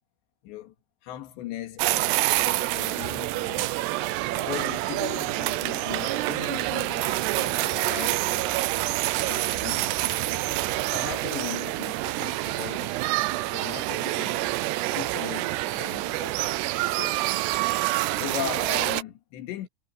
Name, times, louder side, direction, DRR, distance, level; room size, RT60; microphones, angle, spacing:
voice 1, 0.4-0.7 1.0-3.8 4.3-8.6 9.2-10.4 10.8-13.0 13.4-14.5 14.8-16.6 16.9-17.2 18.2-19.7, left 12 dB, 80° left, 4.1 m, -39 dB
sound 1, 1.8-19.0, right 18 dB, 85° right, 2.7 m, -27 dB
sound 2, 5.6-11.3, right 5 dB, 60° right, 5.7 m, -47 dB
omnidirectional pair, 5.1 m